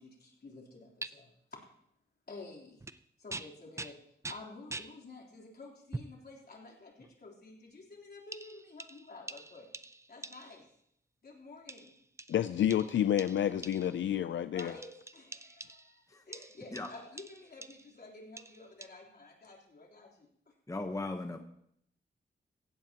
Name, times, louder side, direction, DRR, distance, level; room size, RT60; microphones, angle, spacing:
voice 1, 0.0-1.6 2.3-2.8 3.2-4.0 4.2-9.7 10.1-10.6 11.2-11.9 14.5-20.5, left 3 dB, 55° left, -2 dB, 3.5 m, -51 dB
sound 1, 1.0-1.1 2.8-3.0 3.3-5.0 5.9-6.2 7.0-7.1 8.3-10.7 11.7-14.1 14.6-16.0 16.3-18.0 18.4-18.9, right 2 dB, 15° right, 0.5 m, -46 dB
voice 2, 12.3-14.7, left 10 dB, 85° left, 12 dB, 0.4 m, -29 dB
voice 3, 20.7-21.4, left 2 dB, 15° left, 5 dB, 1.0 m, -37 dB
16.5 x 16.5 x 2.9 m, 0.71 s
wide cardioid pair, 100°, 19 cm